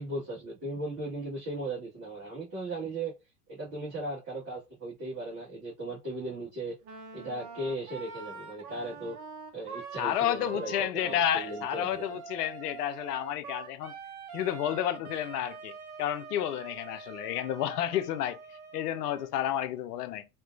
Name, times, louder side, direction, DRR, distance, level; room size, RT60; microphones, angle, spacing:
voice 1, 0.0-3.1 3.5-6.7 7.1-9.2 9.5-12.0, right 2 dB, 35° right, 1.6 m, -37 dB
Wind instrument woodwind instrument, 6.8-19.3, right 5 dB, 60° right, 0.9 m, -44 dB
voice 2, 10.0-13.9 14.3-20.3, left 11 dB, 75° left, 0.6 m, -31 dB
3.7 x 2.3 x 2.5 m
figure-of-eight pair, 70°, 48 cm